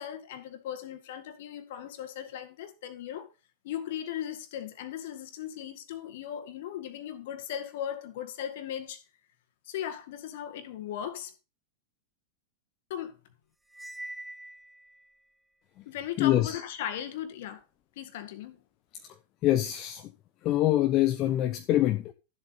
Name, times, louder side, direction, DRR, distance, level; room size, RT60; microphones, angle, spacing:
voice 1, 0.0-3.3 3.6-9.0 9.7-11.3 12.9-13.2 15.9-17.6 18.0-18.6, left 10 dB, 55° left, 1.7 m, -37 dB
Cymbal, 13.7-15.1, right 1 dB, 5° right, 0.5 m, -43 dB
voice 2, 16.2-16.6 18.9-19.2 19.4-20.1 20.4-22.1, left 14 dB, 35° left, 0.8 m, -25 dB
13.0 x 7.7 x 4.1 m
figure-of-eight pair, 90°, 0 cm